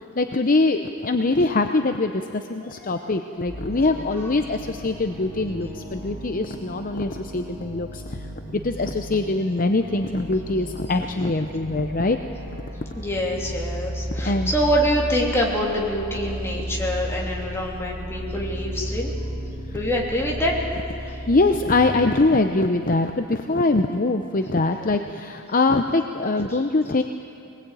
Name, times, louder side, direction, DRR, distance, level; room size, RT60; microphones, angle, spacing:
voice 1, 0.2-8.3 8.5-12.2 14.2-14.5 21.0-27.0, left 2 dB, 40° left, 6 dB, 0.7 m, -23 dB
voice 2, 2.6-3.4 12.9-19.1 19.7-20.6 21.1-21.2 26.5-26.6, equal, 10° left, -2 dB, 3.0 m, -26 dB
sound 1, 3.4-22.2, equal, 30° right, 6.8 m, -34 dB
22.5 x 20.0 x 9.1 m, 2.7 s
head